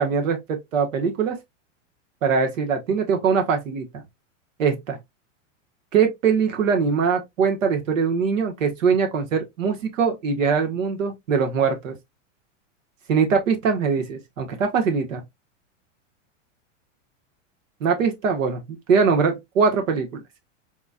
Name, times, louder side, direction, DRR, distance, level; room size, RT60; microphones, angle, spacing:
voice 1, 0.0-1.4 2.2-3.8 4.6-5.0 5.9-11.9 13.1-15.2 17.8-18.6 18.9-20.2, right 5 dB, 90° right, 1.5 m, -22 dB
4.3 x 3.1 x 2.3 m
supercardioid pair, 150°, 38 cm